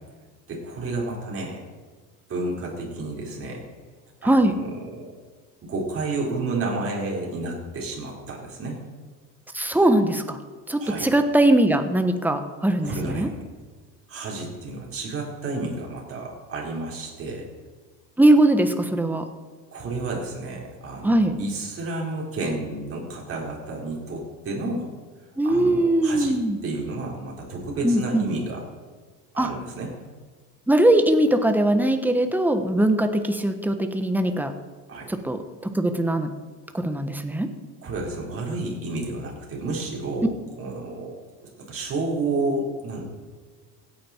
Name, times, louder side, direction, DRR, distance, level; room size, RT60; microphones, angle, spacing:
voice 1, 0.5-1.6 2.3-3.6 4.2-5.1 5.6-8.8 10.7-11.1 12.8-13.3 14.1-17.5 19.7-24.9 25.4-26.4 26.6-28.6 29.3-29.9 34.9-35.1 37.8-41.2 41.6-43.0, right 2 dB, 40° right, -2 dB, 4.5 m, -31 dB
voice 2, 4.2-4.5 9.5-10.4 10.7-13.3 18.2-19.2 21.0-21.3 25.4-26.6 27.8-28.2 29.4-29.5 30.7-34.5 35.1-36.3 36.7-37.5, right 1 dB, 5° right, 7 dB, 1.1 m, -21 dB
16.5 x 9.3 x 4.5 m, 1.4 s
cardioid pair, 120°, 36 cm